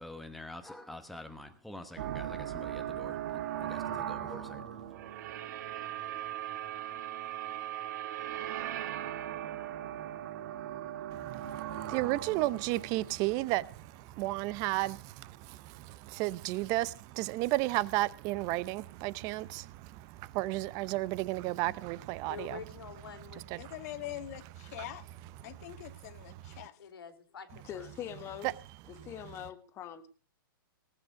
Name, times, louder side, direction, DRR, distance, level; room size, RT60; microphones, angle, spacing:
voice 1, 0.0-4.9, left 1 dB, ahead, 1.0 m, -47 dB
sound 1, 2.0-14.1, right 11 dB, 50° right, 1.8 m, -39 dB
voice 2, 11.1-22.6 23.5-23.6 26.5-26.6 28.4-28.5, right 18 dB, 30° right, 0.7 m, -33 dB
voice 3, 22.3-23.4 26.8-27.9, left 7 dB, 85° left, 3.5 m, -47 dB
voice 4, 23.6-25.0 25.4-26.7, left 14 dB, 45° left, 1.6 m, -43 dB
voice 5, 27.6-28.5 28.9-30.1, left 10 dB, 20° left, 1.4 m, -43 dB
19.0 x 8.8 x 6.5 m
hypercardioid pair, 150°, 12 cm